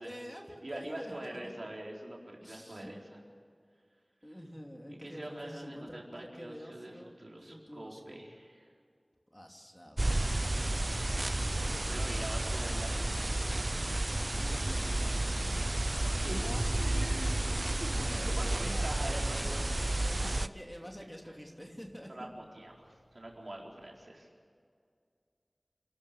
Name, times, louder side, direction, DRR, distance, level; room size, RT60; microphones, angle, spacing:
voice 1, 0.0-1.5 2.4-2.9 4.2-7.1 7.4-8.2 9.3-10.3 11.4-13.1 14.1-15.7 16.3-16.7 17.9-19.6 20.0-22.3, equal, 10° left, 1 dB, 3.0 m, -48 dB
voice 2, 0.6-3.2 4.9-8.7 11.8-13.2 16.0-19.6 22.1-24.3, right 1 dB, 65° right, -1 dB, 4.4 m, -44 dB
sound 1, 10.0-20.5, right 1 dB, 45° right, 0.6 m, -31 dB
sound 2, 15.3-24.0, left 1 dB, 40° left, 4.5 m, -53 dB
27.5 x 12.5 x 8.6 m, 2.2 s
wide cardioid pair, 40°, 0 cm